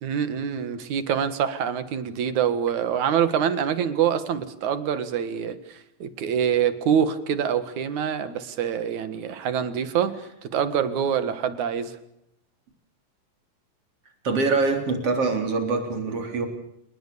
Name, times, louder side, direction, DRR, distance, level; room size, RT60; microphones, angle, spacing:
voice 1, 0.0-10.1 10.4-12.0, right 8 dB, 80° right, 12 dB, 3.1 m, -25 dB
voice 2, 14.2-16.5, right 3 dB, 55° right, 5 dB, 4.6 m, -24 dB
29.5 x 19.5 x 6.9 m, 0.78 s
omnidirectional pair, 3.3 m